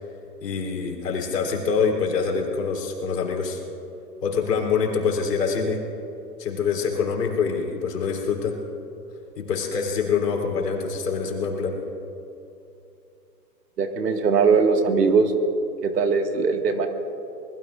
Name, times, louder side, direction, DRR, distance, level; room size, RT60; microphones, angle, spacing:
voice 1, 0.4-3.6 4.2-5.8 6.4-8.6 9.4-11.8, left 5 dB, 75° left, 0 dB, 3.6 m, -25 dB
voice 2, 13.8-15.3 15.8-16.9, right 5 dB, 75° right, 4 dB, 2.0 m, -20 dB
24.0 x 20.5 x 2.5 m, 2.7 s
hypercardioid pair, 135°, 49 cm